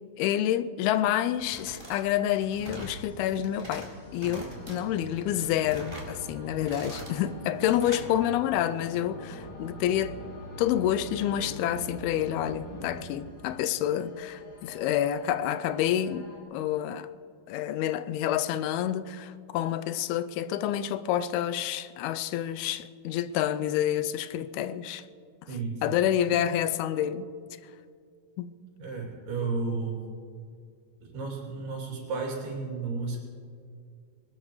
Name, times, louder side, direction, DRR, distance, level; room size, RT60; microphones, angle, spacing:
voice 1, 0.2-10.2 10.6-16.3 16.5-17.1 17.5-25.0 25.8-27.3 28.4-28.5, left 11 dB, 90° left, 2.5 m, -28 dB
sound 1, 1.3-2.0 2.3-3.0 3.4-3.9 4.2-4.8 5.2-6.1 6.5-7.2 7.6-8.0, equal, 10° right, 2.9 m, -43 dB
sound 2, 2.4-16.4, right 1 dB, 35° left, 2.9 m, -49 dB
sound 3, 4.1-13.1, left 1 dB, 65° left, 4.3 m, -44 dB
voice 2, 25.5-26.0 28.8-30.0 31.0-33.2, right 4 dB, 80° right, 4.8 m, -33 dB
22.0 x 19.5 x 3.1 m
omnidirectional pair, 4.4 m